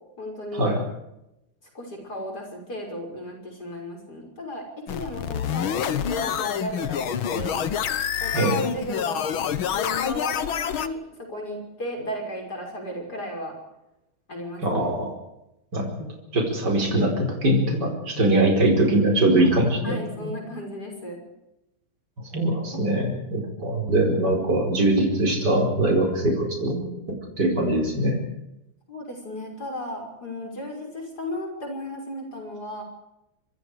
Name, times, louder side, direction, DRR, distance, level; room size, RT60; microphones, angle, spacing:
voice 1, 0.2-0.7 1.7-7.6 8.2-9.3 9.7-13.5 14.3-14.9 16.6-16.9 19.4-19.5 19.8-21.2 28.9-32.8, left 1 dB, 45° left, 1 dB, 6.6 m, -35 dB
sound 1, 4.9-10.9, left 9 dB, 70° left, 1.9 m, -27 dB
voice 2, 14.6-15.1 15.7-15.9 16.3-20.3 22.3-26.9 27.4-28.2, right 1 dB, 50° right, 1 dB, 5.5 m, -22 dB
26.0 x 25.5 x 5.0 m, 0.89 s
omnidirectional pair, 2.4 m